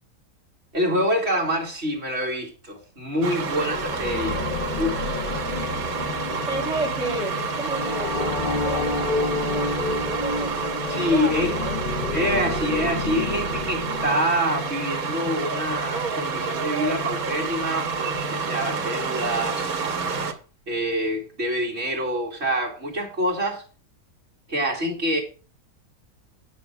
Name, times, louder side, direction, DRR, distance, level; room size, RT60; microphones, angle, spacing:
voice 1, 0.7-4.4 4.8-5.4 10.9-11.5 12.1-19.7 20.7-23.6 24.5-25.2, equal, 45° right, 2.4 m, -26 dB
sound 1, 3.2-20.3, right 4 dB, 70° right, 1.6 m, -29 dB
sound 2, 3.4-14.6, left 3 dB, 40° left, 0.9 m, -30 dB
voice 2, 6.5-10.6 10.9-11.8, right 2 dB, 5° right, 2.0 m, -32 dB
9.5 x 6.0 x 5.7 m
omnidirectional pair, 1.6 m